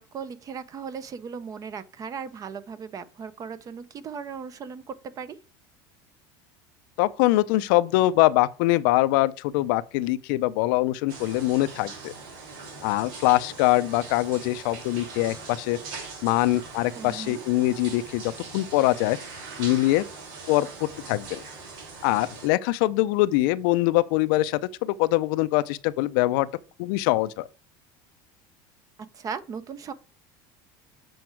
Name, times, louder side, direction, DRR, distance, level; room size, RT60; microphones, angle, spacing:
voice 1, 0.0-5.4 16.9-17.4 29.1-29.9, right 6 dB, 35° right, 0.8 m, -37 dB
voice 2, 7.0-12.1 12.8-15.8 16.2-19.2 19.6-20.0 20.5-20.7 21.1-21.4 22.0-26.5 26.8-27.5, left 17 dB, 75° left, 0.5 m, -23 dB
sound 1, 11.1-22.5, right 4 dB, 85° right, 3.1 m, -41 dB
7.8 x 4.7 x 4.5 m
supercardioid pair, 130°, 11 cm